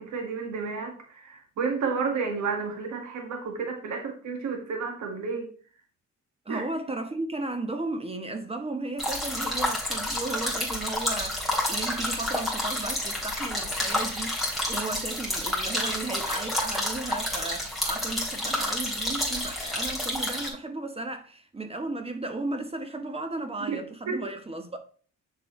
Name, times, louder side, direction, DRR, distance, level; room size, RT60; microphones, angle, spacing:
voice 1, 0.0-5.5 6.5-6.6 23.7-23.8 24.1-24.2, right 5 dB, 70° right, 1.8 m, -31 dB
voice 2, 6.4-24.8, right 2 dB, 20° right, 1.0 m, -35 dB
sound 1, 9.0-20.5, left 1 dB, ahead, 3.3 m, -29 dB
6.8 x 6.7 x 3.1 m
cardioid pair, 90°, 30 cm